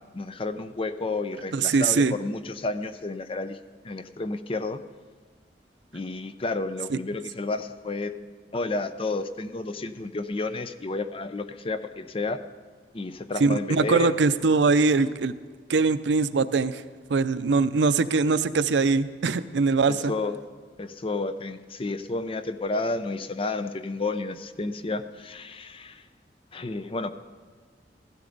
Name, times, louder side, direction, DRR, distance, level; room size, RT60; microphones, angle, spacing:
voice 1, 0.1-3.6 3.8-4.8 5.9-8.2 8.5-12.4 12.9-14.1 19.9-20.4 20.8-26.0 26.5-27.1, left 3 dB, 30° left, 11 dB, 0.5 m, -31 dB
voice 2, 1.5-2.1 6.9-7.0 13.4-15.3 15.7-16.8 17.1-20.1, right 4 dB, 85° right, 14 dB, 0.5 m, -22 dB
16.0 x 13.0 x 3.9 m, 1.5 s
head